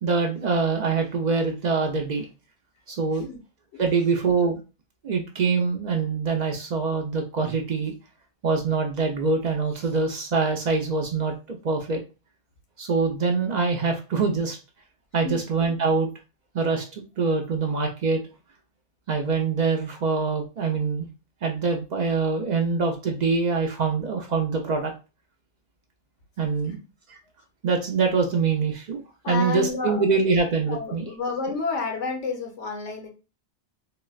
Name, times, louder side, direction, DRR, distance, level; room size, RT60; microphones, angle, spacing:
voice 1, 0.0-2.2 2.9-3.3 3.8-4.6 5.0-7.9 8.4-12.0 12.8-14.6 15.1-16.1 16.5-18.2 19.1-21.1 21.4-24.9 26.4-26.8 27.1-27.2 27.6-29.0 29.3-31.1, right 4 dB, 55° right, 2 dB, 0.5 m, -24 dB
voice 2, 29.2-30.0 30.7-33.1, left 4 dB, 80° left, 2 dB, 1.2 m, -30 dB
3.8 x 2.1 x 2.3 m, 0.30 s
omnidirectional pair, 1.2 m